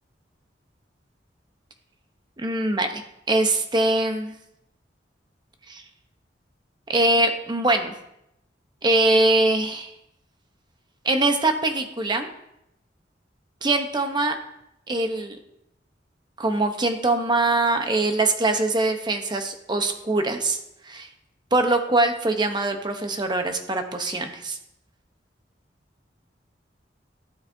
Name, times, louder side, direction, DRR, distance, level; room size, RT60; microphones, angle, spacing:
voice 1, 2.4-3.0 3.3-4.3 5.7-5.8 6.9-7.9 8.8-9.9 11.0-12.3 13.6-14.4 14.9-15.4 16.4-20.6 20.9-21.1 21.5-24.6, right 2 dB, 25° right, 6 dB, 0.9 m, -22 dB
12.5 x 7.9 x 2.7 m, 0.82 s
head